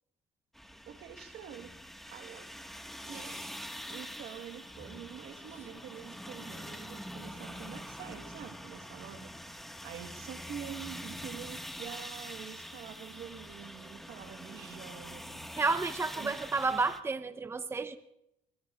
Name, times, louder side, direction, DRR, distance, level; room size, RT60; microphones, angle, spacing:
sound 1, 0.5-17.0, equal, ahead, 1.6 m, -45 dB
voice 1, 0.8-1.7 2.1-2.5 3.1-3.4 3.9-15.5 16.1-16.4, right 9 dB, 75° right, 8 dB, 1.4 m, -46 dB
voice 2, 15.6-18.0, right 4 dB, 15° right, 11 dB, 0.7 m, -31 dB
26.5 x 21.0 x 2.4 m, 0.82 s
cardioid pair, 110°, 17 cm